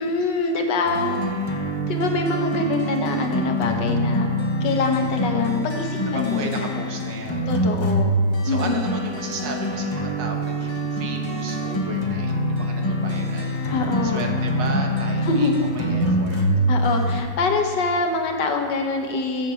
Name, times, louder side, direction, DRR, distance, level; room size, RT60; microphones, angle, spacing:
voice 1, 0.0-1.1 1.9-4.3 4.6-6.8 7.5-8.2 8.5-8.9 13.7-14.2 15.2-15.6 16.7-19.5, left 3 dB, 75° left, 4 dB, 1.7 m, -24 dB
sound 1, 0.8-17.2, equal, 20° left, 0.8 m, -25 dB
voice 2, 1.0-1.4 6.1-7.5 8.4-13.6 14.0-16.4, right 3 dB, 75° right, 3 dB, 1.9 m, -35 dB
7.6 x 6.9 x 7.6 m, 2.1 s
omnidirectional pair, 2.0 m